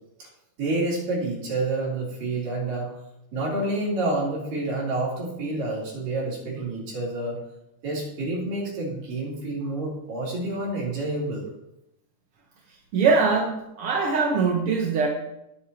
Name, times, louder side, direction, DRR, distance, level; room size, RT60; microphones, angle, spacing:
voice 1, 0.6-2.9 3.3-7.4 7.8-11.4, right 2 dB, 85° right, -5 dB, 5.2 m, -28 dB
voice 2, 12.9-15.1, right 4 dB, 60° right, -1 dB, 1.7 m, -22 dB
18.5 x 8.3 x 2.9 m, 0.87 s
omnidirectional pair, 3.8 m